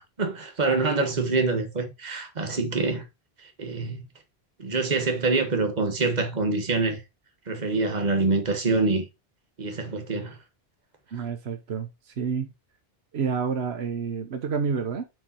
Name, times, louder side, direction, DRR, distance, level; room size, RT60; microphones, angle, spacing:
voice 1, 0.0-3.0 3.4-4.0 4.6-7.0 7.5-9.0 9.6-10.4, right 3 dB, 45° right, 1.6 m, -25 dB
voice 2, 11.1-12.5 13.1-15.0, right 6 dB, 85° right, 1.2 m, -29 dB
7.8 x 4.9 x 2.9 m
omnidirectional pair, 1.0 m